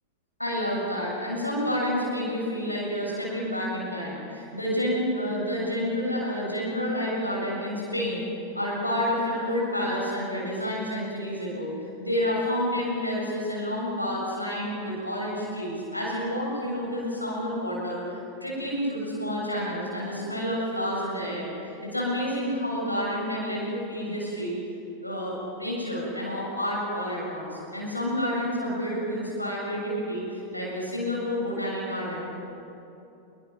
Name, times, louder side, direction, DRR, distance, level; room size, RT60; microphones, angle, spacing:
voice 1, 0.4-8.2 8.5-11.7 12.0-24.5 25.0-32.3, equal, 90° left, -4 dB, 7.3 m, -29 dB
27.0 x 24.0 x 6.2 m, 2.9 s
figure-of-eight pair, 90°, 0 cm